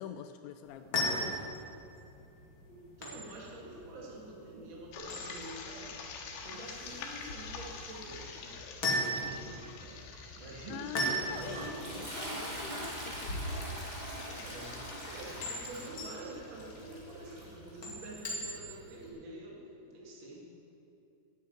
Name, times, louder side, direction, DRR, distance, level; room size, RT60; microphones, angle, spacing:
voice 1, 0.0-1.5 10.7-13.5, left 9 dB, 90° left, 9 dB, 2.5 m, -45 dB
sound 1, 0.6-18.9, equal, 40° left, 1.9 m, -39 dB
voice 2, 2.7-6.0 6.4-8.5 8.9-10.0 10.3-11.8 14.3-20.7, right 2 dB, 70° right, -3 dB, 1.1 m, -48 dB
sound 2, 4.9-17.8, left 5 dB, 75° left, 3.7 m, -47 dB
Toilet flush, 10.8-19.1, right 1 dB, 15° right, 2.0 m, -44 dB
14.5 x 9.0 x 9.2 m, 2.7 s
omnidirectional pair, 5.8 m